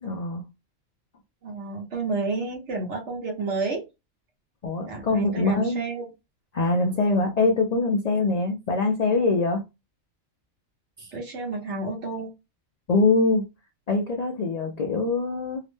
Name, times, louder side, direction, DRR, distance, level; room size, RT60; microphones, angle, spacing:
voice 1, 0.0-0.4 4.6-5.8 6.5-9.6 11.0-11.1 12.9-13.5 13.9-15.6, left 3 dB, 80° left, 0.3 m, -23 dB
voice 2, 1.4-3.8 4.9-6.1 11.1-12.3, right 3 dB, 65° right, 1.1 m, -30 dB
2.8 x 2.1 x 3.1 m
omnidirectional pair, 1.3 m